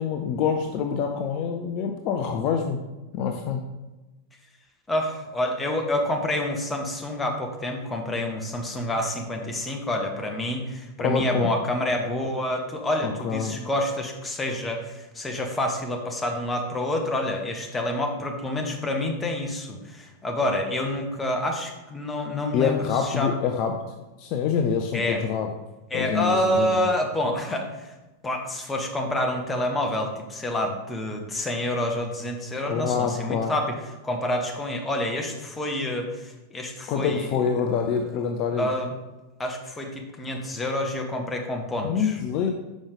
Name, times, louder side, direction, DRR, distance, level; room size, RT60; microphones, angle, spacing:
voice 1, 0.0-2.8 3.1-3.6 11.0-11.5 13.0-13.5 22.5-23.8 24.2-25.5 25.9-26.9 32.7-33.6 36.9-38.7 41.8-42.5, left 6 dB, 40° left, 4 dB, 0.5 m, -26 dB
voice 2, 4.9-23.4 24.9-25.2 25.9-27.9 28.2-33.7 34.0-37.3 38.6-38.9 39.4-42.2, left 1 dB, 15° left, 2 dB, 1.0 m, -28 dB
6.2 x 5.2 x 3.5 m, 1.1 s
figure-of-eight pair, 90°, 0 cm